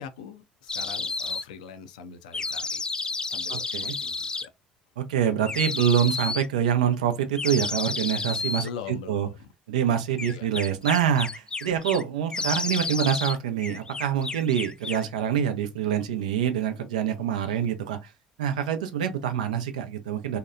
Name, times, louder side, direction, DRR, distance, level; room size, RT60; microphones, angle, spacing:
voice 1, 0.0-2.8 3.3-4.5 8.6-9.5 10.2-10.5, left 7 dB, 85° left, 0.4 m, -42 dB
sound 1, 0.7-1.4 2.3-4.5 5.5-6.5 7.3-8.7 10.2-12.0 12.3-13.4 13.6-15.1, left 4 dB, 20° left, 0.3 m, -31 dB
voice 2, 3.5-4.0 5.0-8.7 9.1-9.3 9.7-18.1 18.4-20.4, right 9 dB, 85° right, 0.5 m, -26 dB
2.7 x 2.1 x 2.3 m
hypercardioid pair, 70°, 4 cm